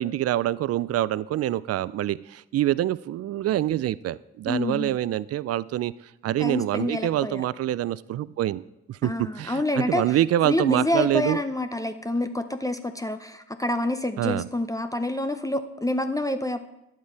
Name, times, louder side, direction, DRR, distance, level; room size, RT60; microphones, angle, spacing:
voice 1, 0.0-5.9 6.2-8.6 8.9-11.4 14.2-14.5, right 13 dB, 50° right, 19 dB, 0.4 m, -26 dB
voice 2, 4.5-5.0 6.4-7.4 9.0-10.2 10.4-16.6, left 1 dB, 10° left, 8 dB, 0.7 m, -27 dB
10.0 x 7.4 x 4.6 m, 0.89 s
hypercardioid pair, 45°, 32 cm